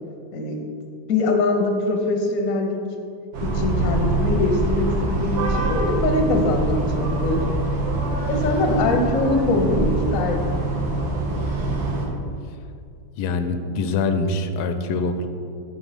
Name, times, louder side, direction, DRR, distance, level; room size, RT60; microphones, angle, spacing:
voice 1, 1.1-2.8 3.4-7.4 8.3-10.6, left 2 dB, 60° left, 3 dB, 0.8 m, -23 dB
sound 1, 3.3-12.1, right 2 dB, 65° right, 1.6 m, -24 dB
voice 2, 13.2-15.3, left 3 dB, 85° left, 8 dB, 1.5 m, -24 dB
5.7 x 5.3 x 4.9 m, 2.3 s
omnidirectional pair, 2.3 m